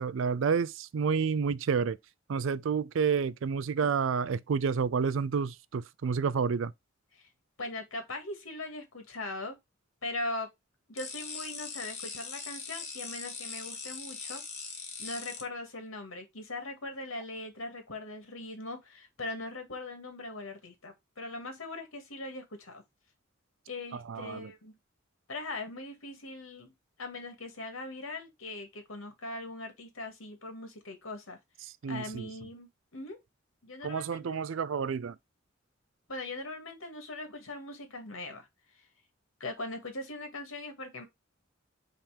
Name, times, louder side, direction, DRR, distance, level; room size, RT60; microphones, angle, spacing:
voice 1, 0.0-2.0 2.3-6.7 23.9-24.5 31.6-32.3 33.8-35.2, right 6 dB, 70° right, 0.4 m, -30 dB
voice 2, 7.6-9.6 10.0-10.5 10.9-22.8 23.7-24.8 25.3-26.7 27.0-31.4 31.9-33.2 33.6-34.4 36.1-38.5 39.4-41.0, left 2 dB, 90° left, 2.2 m, -40 dB
sound 1, 11.0-15.4, left 5 dB, 35° left, 1.6 m, -41 dB
5.6 x 3.6 x 5.0 m
head